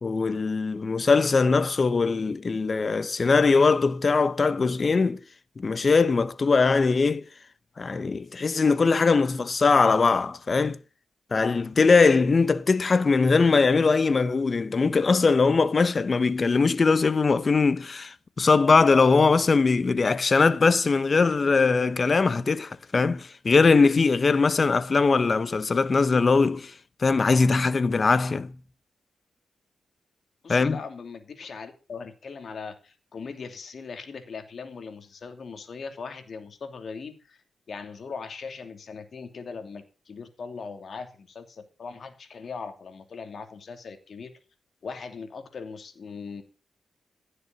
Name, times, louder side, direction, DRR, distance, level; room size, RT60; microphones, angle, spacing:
voice 1, 0.0-5.2 5.6-7.3 7.8-10.8 11.3-28.6 30.5-30.8, left 4 dB, 45° left, 1.0 m, -21 dB
voice 2, 30.4-37.4 37.7-44.3 44.8-46.4, left 5 dB, 60° left, 2.8 m, -39 dB
16.0 x 6.8 x 6.0 m
cardioid pair, 60°, 0 cm